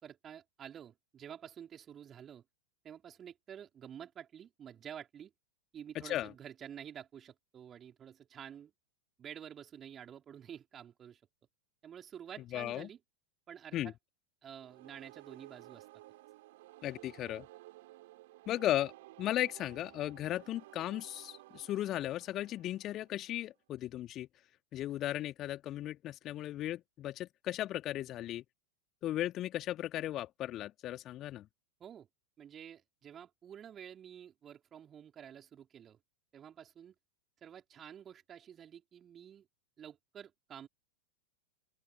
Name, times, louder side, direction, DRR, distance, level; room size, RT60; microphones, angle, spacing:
voice 1, 0.0-2.4 2.8-5.3 5.7-8.7 9.2-11.2 11.8-13.0 13.5-13.9 14.4-15.9 31.8-32.1 32.4-36.0 36.3-36.9 37.4-39.5 39.8-40.7, right 9 dB, 25° right, 4.0 m, -50 dB
voice 2, 5.9-6.3 12.5-12.9 13.7-13.9 16.8-17.5 18.5-18.9 19.2-24.3 24.7-28.4 29.0-31.5, left 13 dB, 35° left, 2.2 m, -36 dB
sound 1, 14.6-23.5, right 18 dB, 50° right, 3.6 m, -55 dB
open air
figure-of-eight pair, 90°, 0 cm